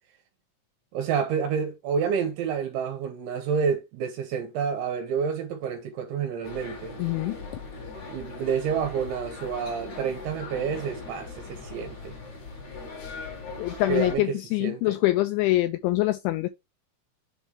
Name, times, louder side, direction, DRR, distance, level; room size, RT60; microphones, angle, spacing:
voice 1, 0.9-7.0 8.1-12.2 13.9-15.0, right 6 dB, 75° right, 3.1 m, -29 dB
sound 1, 6.4-14.2, left 3 dB, 50° left, 2.6 m, -39 dB
voice 2, 7.0-7.4 13.6-16.5, left 17 dB, 85° left, 2.7 m, -24 dB
7.2 x 3.2 x 5.2 m
omnidirectional pair, 5.7 m